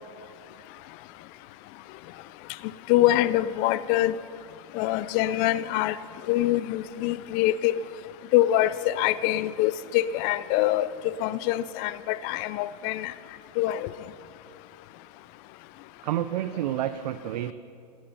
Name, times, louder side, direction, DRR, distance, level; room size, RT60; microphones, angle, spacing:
voice 1, 2.9-4.2 4.7-6.0 6.3-7.8 8.3-13.1 13.6-13.9, left 14 dB, 40° left, 16 dB, 0.4 m, -24 dB
voice 2, 16.0-17.5, right 12 dB, 75° right, 11 dB, 0.5 m, -29 dB
15.0 x 9.0 x 5.7 m, 2.5 s
hypercardioid pair, 120°, 21 cm